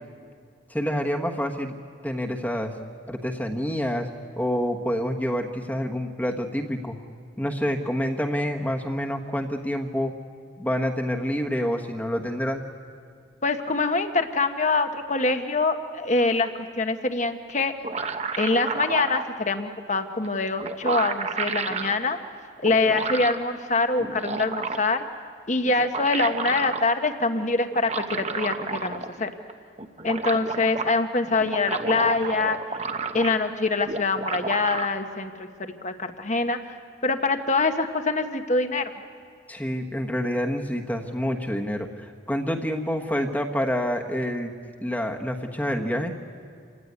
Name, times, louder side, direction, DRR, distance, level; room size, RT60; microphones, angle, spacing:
voice 1, 0.7-1.7 2.0-2.7 3.1-4.1 4.4-7.0 7.4-10.1 10.6-12.6 39.5-44.5 44.8-46.1, equal, 10° left, 3 dB, 1.3 m, -27 dB
voice 2, 13.4-17.7 18.4-22.2 22.6-25.1 25.5-29.3 30.0-32.6 33.1-36.7 37.0-38.9, left 3 dB, 35° left, 7 dB, 1.2 m, -24 dB
sound 1, 17.6-19.3 20.2-20.3 20.6-21.9 22.6-23.4 24.0-25.0 25.7-26.8 27.7-29.2 29.5-29.6 29.8-30.9 31.4-33.5 33.8-34.9, right 4 dB, 35° right, 0.9 m, -31 dB
28.0 x 16.5 x 9.8 m, 2.1 s
head